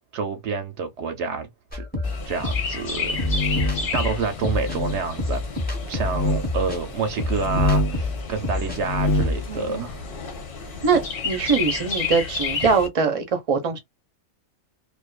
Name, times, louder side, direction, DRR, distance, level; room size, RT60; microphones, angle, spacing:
voice 1, 0.1-1.8 2.3-3.1 3.9-5.4 5.9-10.0 10.6-10.7, right 5 dB, 65° right, 0.9 m, -28 dB
sound 1, 1.7-8.8 9.1-9.6, left 2 dB, 10° left, 0.9 m, -28 dB
Chirp tweet, 2.0-12.9, left 4 dB, 50° left, 0.9 m, -32 dB
sound 2, 2.9-3.9 4.6-5.0 6.0-6.5 7.3-8.0 8.7-9.4, left 1 dB, 85° left, 1.0 m, -24 dB
voice 2, 9.5-9.8 10.8-13.8, right 5 dB, 35° right, 0.6 m, -22 dB
2.5 x 2.4 x 2.2 m
omnidirectional pair, 1.3 m